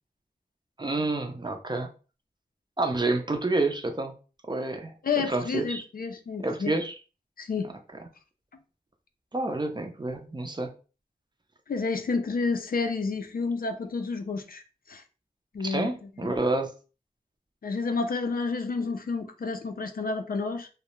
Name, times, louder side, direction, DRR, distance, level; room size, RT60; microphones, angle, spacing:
voice 1, 0.8-1.9 2.8-4.1 4.5-5.8 6.4-6.9 9.3-10.7 15.6-16.7, right 2 dB, 30° right, 0.5 m, -29 dB
voice 2, 5.0-6.7 7.4-7.7 11.7-15.0 15.5-16.3 17.6-20.7, left 4 dB, 65° left, 0.4 m, -30 dB
2.3 x 2.0 x 2.9 m
wide cardioid pair, 60°, 16 cm